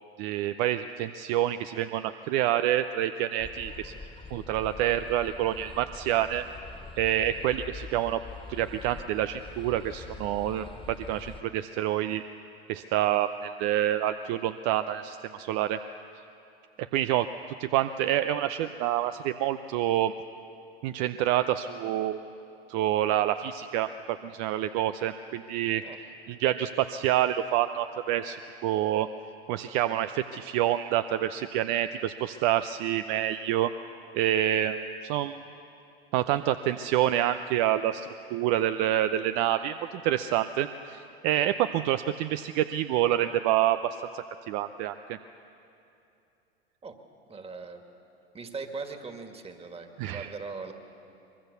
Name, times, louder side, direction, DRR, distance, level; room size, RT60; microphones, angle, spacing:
voice 1, 0.2-3.9 4.3-6.4 7.0-8.2 8.5-12.2 12.7-15.8 16.8-17.3 17.6-20.1 20.8-22.2 22.7-25.8 26.4-28.4 28.6-29.1 29.5-33.7 34.1-35.4 36.1-39.7 40.0-43.8 44.1-45.2 50.0-50.3, right 12 dB, 50° right, 11 dB, 0.7 m, -27 dB
sound 1, 3.4-11.4, left 4 dB, 15° left, 1.8 m, -44 dB
voice 2, 47.3-47.8 48.3-50.7, right 4 dB, 20° right, 5 dB, 2.2 m, -40 dB
24.0 x 22.5 x 6.9 m, 2.7 s
hypercardioid pair, 90°, 31 cm